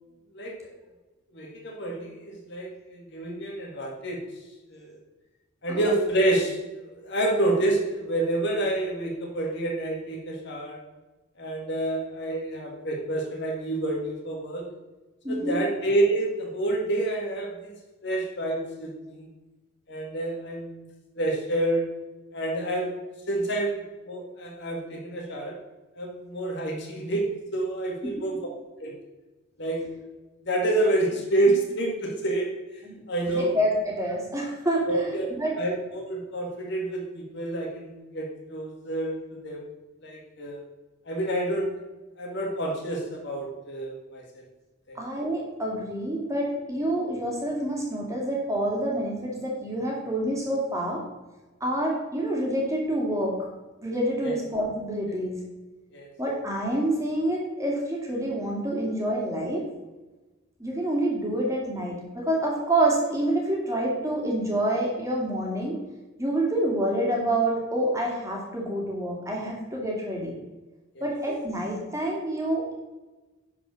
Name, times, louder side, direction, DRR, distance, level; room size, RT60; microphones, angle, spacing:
voice 1, 0.3-0.7 1.3-4.2 4.7-5.0 5.6-6.6 7.0-10.8 11.4-14.6 15.3-17.7 18.0-19.3 19.9-20.8 21.2-21.8 22.3-23.0 23.3-23.7 24.1-25.5 26.0-27.3 27.5-28.4 28.8-28.9 29.6-29.8 30.4-32.5 33.1-33.5 34.9-35.3 35.6-39.6 40.0-40.6 41.1-41.7 42.2-44.2 44.9-45.0 54.2-54.4 55.9-56.1 71.0-71.1, right 1 dB, 55° left, 0 dB, 2.1 m, -28 dB
voice 2, 15.2-15.6 32.8-33.0 33.4-35.5 44.9-51.0 51.6-53.5 53.8-55.4 56.2-59.7 60.6-65.8 66.2-70.3 71.0-72.7, right 1 dB, 15° right, -2 dB, 2.4 m, -27 dB
11.0 x 4.8 x 6.4 m, 1.1 s
head